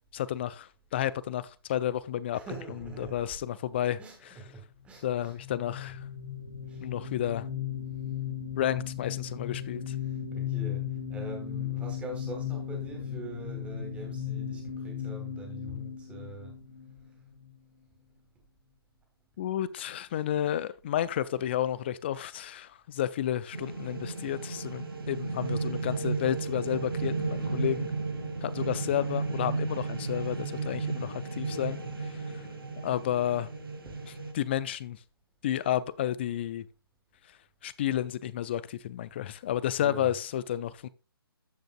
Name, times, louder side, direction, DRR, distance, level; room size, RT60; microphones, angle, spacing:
voice 1, 0.1-2.4 2.8-4.0 4.2-4.3 5.0-6.0 6.8-7.5 8.6-10.0 19.4-27.9 28.4-32.1 32.3-32.4 32.8-33.5 34.3-35.0 35.4-36.6 37.6-40.9, left 11 dB, 25° left, 0.4 m, -31 dB
voice 2, 2.3-3.3 4.0-5.3 6.7-6.8 10.3-10.8 11.1-16.5 33.9-34.0 39.8-40.1, right 2 dB, 10° right, 2.6 m, -43 dB
sound 1, 5.3-17.5, left 9 dB, 75° left, 1.6 m, -36 dB
sound 2, 23.5-34.3, right 4 dB, 65° right, 2.2 m, -34 dB
15.0 x 5.1 x 2.3 m
figure-of-eight pair, 135°, 13 cm